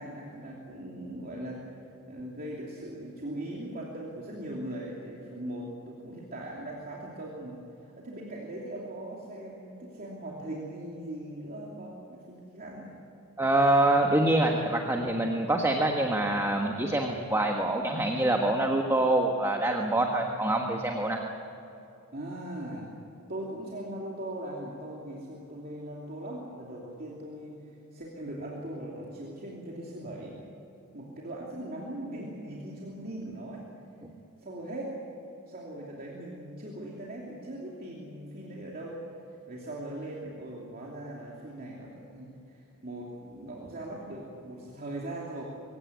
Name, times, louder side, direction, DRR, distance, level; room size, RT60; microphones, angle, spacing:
voice 1, 0.0-1.7 2.1-7.6 8.0-12.9 22.1-22.9 23.3-27.5 27.9-30.4 30.9-33.7 34.4-35.0 35.5-39.0 39.5-45.4, right 1 dB, 45° right, -3 dB, 2.9 m, -40 dB
voice 2, 13.4-21.3, right 1 dB, 15° right, 2 dB, 1.4 m, -25 dB
23.5 x 17.0 x 9.6 m, 2.8 s
head